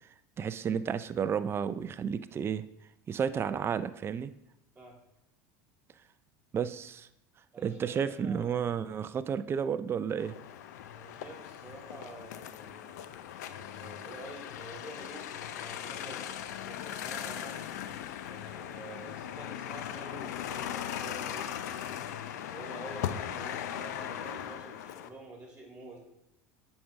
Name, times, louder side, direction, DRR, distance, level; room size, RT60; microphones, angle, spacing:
voice 1, 0.4-2.6 3.1-4.3 6.5-7.1 7.6-10.4, right 7 dB, 25° right, 13 dB, 0.4 m, -32 dB
voice 2, 7.5-8.6 10.9-13.0 13.6-17.7 18.3-21.6 22.3-26.0, right 2 dB, 10° right, -1 dB, 2.8 m, -48 dB
sound 1, 10.2-25.1, left 10 dB, 85° left, 0.5 m, -39 dB
8.5 x 5.3 x 3.5 m, 0.84 s
supercardioid pair, 100°, 9 cm